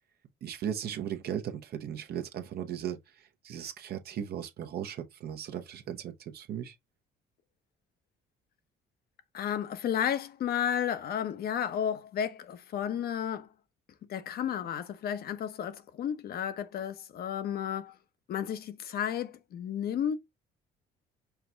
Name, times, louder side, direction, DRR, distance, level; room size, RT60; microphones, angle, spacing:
voice 1, 0.4-6.8, right 9 dB, 60° right, 0.8 m, -37 dB
voice 2, 9.3-13.5 14.1-17.9 18.3-20.2, left 9 dB, 60° left, 0.8 m, -32 dB
5.8 x 2.2 x 3.8 m
cardioid pair, 90°, 18 cm